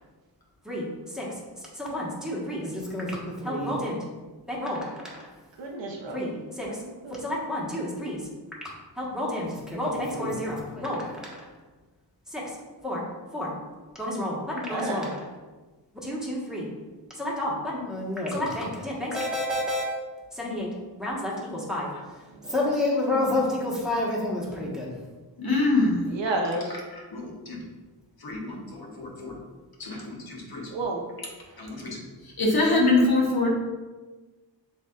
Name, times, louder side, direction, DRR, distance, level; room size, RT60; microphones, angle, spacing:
voice 1, 1.7-4.0 4.5-5.2 6.1-6.7 7.2-8.2 9.0-11.4 12.3-12.4 12.8-13.0 13.3-13.5 14.0-15.2 16.0-16.7 17.1-19.8 20.3-20.7 21.0-21.9 22.5-24.9, left 1 dB, ahead, -5 dB, 1.3 m, -29 dB
voice 2, 5.6-7.2 14.7-15.0 22.3-22.5 26.1-26.7 29.9-30.0 30.7-31.0, right 2 dB, 90° right, 0 dB, 0.8 m, -32 dB
voice 3, 25.4-26.0 26.7-27.6 28.2-29.4 29.8-30.7 31.6-33.5, left 2 dB, 55° left, -2 dB, 1.1 m, -25 dB
7.3 x 2.7 x 2.4 m, 1.3 s
wide cardioid pair, 80°, 43 cm